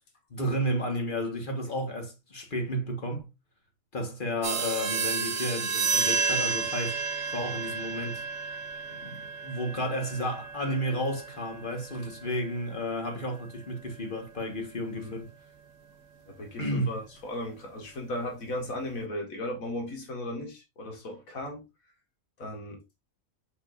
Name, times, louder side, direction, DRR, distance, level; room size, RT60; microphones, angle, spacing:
voice 1, 0.3-3.3 3.9-8.2 8.9-15.3 16.6-16.9, equal, 40° left, 1.6 m, -32 dB
sound 1, 4.4-14.6, right 5 dB, 70° right, 1.3 m, -32 dB
voice 2, 16.3-21.6 22.4-22.8, left 1 dB, 80° left, 2.2 m, -36 dB
6.5 x 5.6 x 2.6 m
omnidirectional pair, 1.4 m